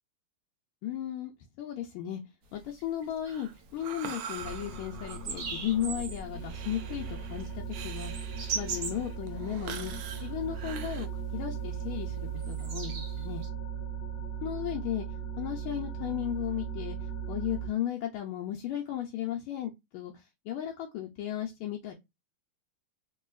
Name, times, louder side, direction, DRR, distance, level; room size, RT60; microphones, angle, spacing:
voice 1, 0.8-1.3 1.6-2.2 2.5-8.1 8.5-9.9 10.2-13.4 14.4-15.1 15.4-17.0 17.3-20.1 20.5-21.9, left 11 dB, 80° left, 1.5 m, -35 dB
sound 1, 2.4-4.2 4.6-4.7 5.0-6.2 6.5-9.8 10.2-10.7 11.0-11.2 11.6-13.5, right 6 dB, 55° right, 1.3 m, -39 dB
Breathing, 3.3-11.1, right 9 dB, 75° right, 1.1 m, -45 dB
sound 2, 4.4-17.7, right 7 dB, 45° left, 1.1 m, -38 dB
3.7 x 2.7 x 2.3 m
omnidirectional pair, 2.4 m